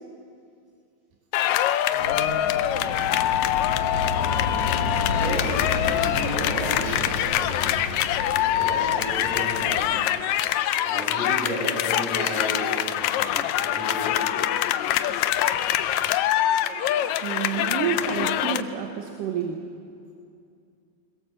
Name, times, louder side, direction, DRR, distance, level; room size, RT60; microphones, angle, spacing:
sound 1, 1.3-18.6, left 12 dB, 80° left, 1.6 m, -24 dB
voice 1, 1.9-2.4 5.1-7.8 8.5-10.0 10.8-14.2 18.1-18.2, equal, 50° right, -4 dB, 8.1 m, -33 dB
Aircraft, 2.0-10.0, left 3 dB, 55° left, 3.7 m, -31 dB
voice 2, 17.1-19.7, right 7 dB, 75° right, 2 dB, 2.8 m, -29 dB
22.0 x 21.0 x 7.3 m, 2.4 s
omnidirectional pair, 3.9 m